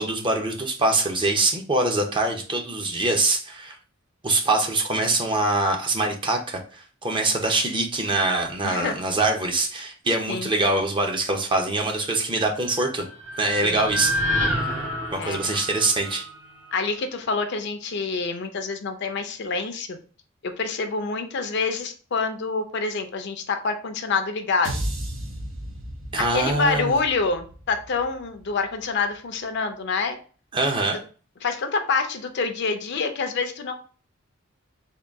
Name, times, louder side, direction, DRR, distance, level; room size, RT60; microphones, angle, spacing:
voice 1, 0.0-3.8 4.2-13.1 13.4-14.2 14.4-14.8 15.1-16.3 26.1-27.0 30.5-31.0, right 2 dB, 25° right, 3 dB, 0.6 m, -24 dB
voice 2, 8.6-8.9 10.3-10.5 13.6-13.9 15.2-15.6 16.7-20.0 20.4-24.8 26.3-30.2 31.4-33.7, left 4 dB, 55° left, 7 dB, 0.5 m, -27 dB
sound 1, 12.6-16.9, equal, 70° right, 1.4 m, -29 dB
sound 2, 24.6-29.0, right 1 dB, 90° right, 1.1 m, -35 dB
3.7 x 2.3 x 3.4 m, 0.39 s
head